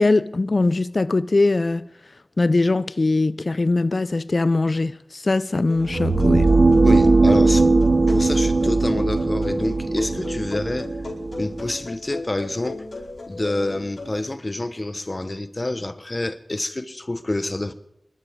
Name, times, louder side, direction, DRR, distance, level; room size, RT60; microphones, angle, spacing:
voice 1, 0.0-1.9 2.4-6.5, left 3 dB, 60° left, 0.5 m, -21 dB
sound 1, 5.7-14.1, left 2 dB, 80° left, 4.9 m, -36 dB
sound 2, 5.8-11.7, right 3 dB, 60° right, 1.0 m, -19 dB
voice 2, 6.8-7.7 8.1-10.9 11.4-12.8 13.3-17.7, left 2 dB, 40° left, 1.2 m, -27 dB
26.5 x 12.5 x 3.7 m
cardioid pair, 45°, 0 cm